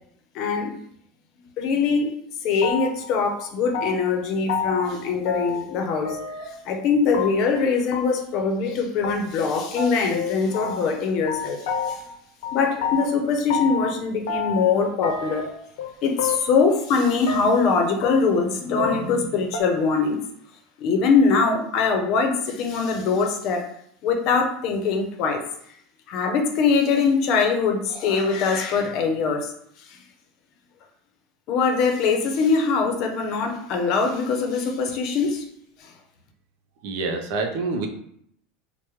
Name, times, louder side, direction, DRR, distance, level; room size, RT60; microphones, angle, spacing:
voice 1, 0.3-0.7 1.6-2.1 2.4-6.2 6.4-12.0 12.5-15.5 16.0-20.2 20.8-23.7 24.0-25.4 26.1-29.5 29.9-30.0 31.5-35.4 35.8-35.9, left 4 dB, 45° left, 3 dB, 0.6 m, -22 dB
sound 1, 2.6-3.1 3.4-4.2 4.5-4.9 5.2-5.8 6.0-6.6 7.1-7.6 7.9-8.0 8.3-8.4 8.7-8.8 9.0-9.1 9.4-9.5 9.8-11.0 11.3-12.2 12.4-13.9 14.3-14.8 15.0-15.9 16.2-16.6 16.9-17.6 18.0-19.2 19.5-19.6, left 6 dB, 80° left, 0.6 m, -29 dB
voice 2, 36.8-37.9, right 3 dB, 60° right, 4 dB, 0.6 m, -26 dB
4.8 x 2.1 x 3.1 m, 0.68 s
supercardioid pair, 160°, 0 cm